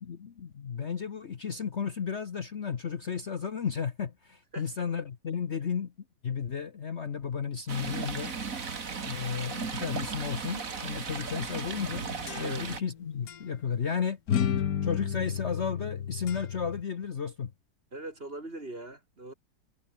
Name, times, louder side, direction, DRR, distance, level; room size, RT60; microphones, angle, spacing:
voice 1, 0.0-5.9 6.2-8.3 9.0-12.1 12.4-14.2 14.8-17.5, left 7 dB, 45° left, 1.2 m, -33 dB
voice 2, 4.5-4.9 12.4-12.7 17.9-19.3, right 2 dB, 35° right, 4.3 m, -41 dB
Stream, 7.7-12.8, right 5 dB, 55° right, 2.5 m, -36 dB
sound 1, 11.8-12.9 13.3-13.4 14.3-16.8, left 8 dB, 60° left, 1.6 m, -32 dB
omnidirectional pair, 1.8 m